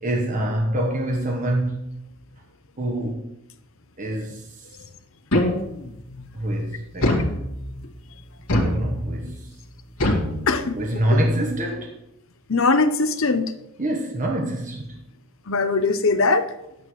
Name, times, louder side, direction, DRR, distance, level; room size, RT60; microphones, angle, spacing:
voice 1, 0.0-1.9 2.8-3.3 4.0-4.5 6.3-7.3 8.5-9.5 10.8-12.0 13.8-15.0, right 1 dB, 35° right, 1.1 m, -25 dB
sound 1, 5.3-6.0 7.0-7.9 8.5-9.3 10.0-11.0, left 1 dB, 80° left, 2.2 m, -24 dB
voice 2, 12.5-13.5 15.5-16.5, left 3 dB, 60° left, 0.8 m, -20 dB
11.0 x 9.4 x 3.2 m
head